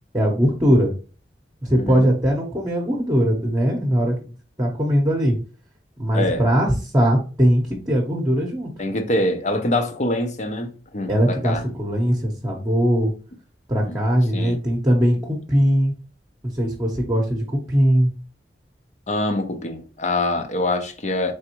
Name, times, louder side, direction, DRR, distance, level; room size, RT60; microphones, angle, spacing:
voice 1, 0.1-0.9 1.6-4.1 4.6-5.4 6.0-8.7 11.1-13.1 13.7-15.9 16.5-18.1, equal, 20° right, 0.9 m, -20 dB
voice 2, 1.8-2.1 6.1-6.5 8.8-11.7 13.9-14.0 14.3-14.6 19.1-21.3, left 1 dB, 40° left, 0.7 m, -25 dB
3.9 x 3.5 x 2.9 m
head